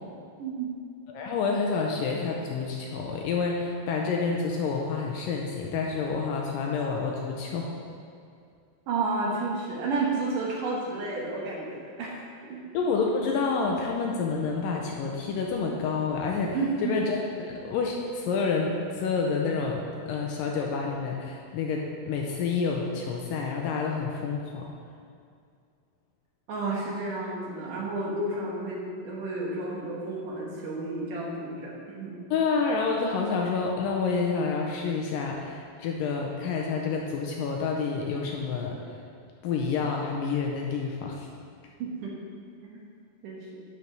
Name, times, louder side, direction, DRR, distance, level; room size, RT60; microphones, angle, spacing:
voice 1, 0.4-0.7 8.9-12.2 12.5-12.6 16.5-17.0 26.5-32.2 41.8-42.2 42.6-42.9 43.2-43.6, right 3 dB, 65° right, -3 dB, 2.6 m, -31 dB
voice 2, 1.1-7.7 12.7-24.7 32.3-38.8 39.4-41.3, left 4 dB, 80° left, 0 dB, 2.1 m, -28 dB
11.0 x 4.5 x 5.3 m, 2.3 s
omnidirectional pair, 4.4 m